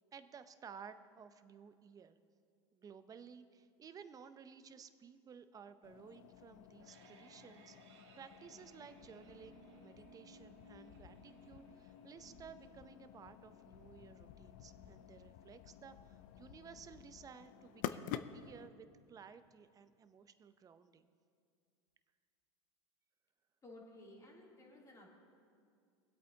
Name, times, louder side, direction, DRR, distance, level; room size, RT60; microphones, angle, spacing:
voice 1, 0.1-2.2 2.7-21.1, right 6 dB, 25° right, 11 dB, 0.6 m, -56 dB
sound 1, 5.8-18.7, left 11 dB, 55° left, 0.5 m, -51 dB
sound 2, 6.5-17.5, right 4 dB, 80° right, 1.4 m, -64 dB
voice 2, 23.6-25.1, left 1 dB, 25° left, -3 dB, 2.9 m, -56 dB
23.0 x 8.3 x 2.8 m, 2.3 s
hypercardioid pair, 100°, 15 cm